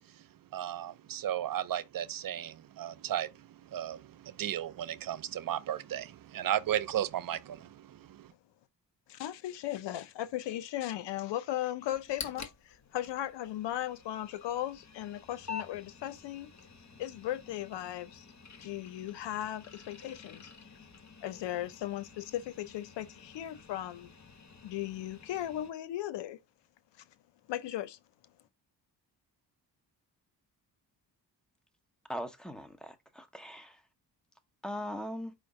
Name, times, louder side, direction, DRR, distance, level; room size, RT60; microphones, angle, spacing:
voice 1, 0.5-8.3, right 11 dB, 55° right, 0.5 m, -35 dB
voice 2, 9.1-16.5 17.0-18.3 18.6-20.5 21.2-24.1 24.6-26.4 27.5-28.0, left 13 dB, 85° left, 0.6 m, -37 dB
sound 1, 11.9-25.7, left 6 dB, 40° left, 1.2 m, -49 dB
voice 3, 32.1-33.8 34.6-35.3, equal, ahead, 0.9 m, -40 dB
5.1 x 2.1 x 4.7 m
cardioid pair, 65°, 42 cm